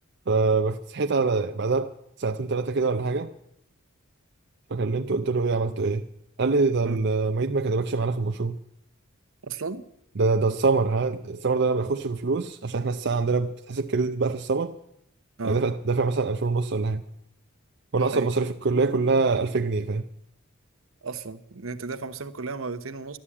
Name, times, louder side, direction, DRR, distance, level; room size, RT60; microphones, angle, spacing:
voice 1, 0.3-1.9 2.2-3.3 4.7-6.0 6.4-8.6 10.2-14.7 15.4-17.0 17.9-20.0, right 3 dB, 50° right, 0.6 m, -24 dB
voice 2, 9.4-9.9 15.4-15.6 18.0-18.3 21.0-23.2, right 4 dB, 70° right, 0.9 m, -34 dB
12.5 x 11.5 x 8.6 m
head